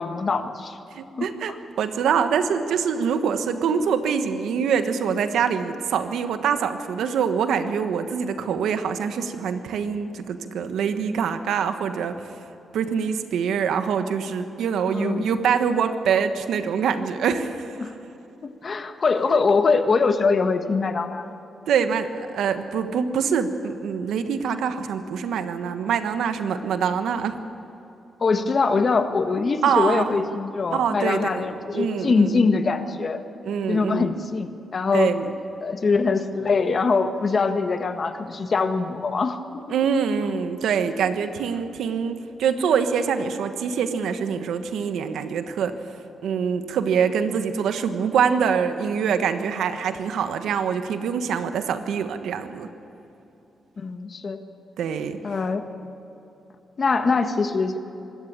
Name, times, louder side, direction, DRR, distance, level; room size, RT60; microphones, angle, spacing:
voice 1, 0.0-0.8 1.2-1.6 14.9-15.3 17.8-17.9 18.4-21.3 28.2-33.2 33.7-35.2 35.6-39.7 53.8-54.4 55.2-55.6 56.8-57.8, left 4 dB, 50° left, 8 dB, 1.6 m, -23 dB
voice 2, 0.9-12.2 12.7-17.7 19.3-19.4 21.7-27.4 29.6-30.1 30.7-31.4 31.7-32.5 33.4-34.2 34.9-35.3 39.7-45.7 46.2-52.7 54.8-55.2, right 7 dB, 90° right, 9 dB, 1.3 m, -24 dB
25.5 x 13.5 x 8.8 m, 3.0 s
cardioid pair, 80°, 0 cm